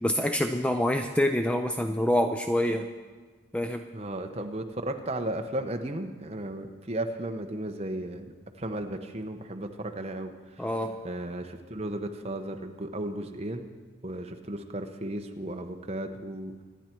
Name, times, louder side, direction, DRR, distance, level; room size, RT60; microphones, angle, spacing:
voice 1, 0.0-2.9 3.5-3.8 10.6-11.0, left 1 dB, 5° left, 6 dB, 0.4 m, -26 dB
voice 2, 3.9-10.7 11.0-13.7 14.0-16.6, right 1 dB, 30° right, 5 dB, 0.9 m, -35 dB
24.5 x 10.5 x 4.5 m, 1.4 s
head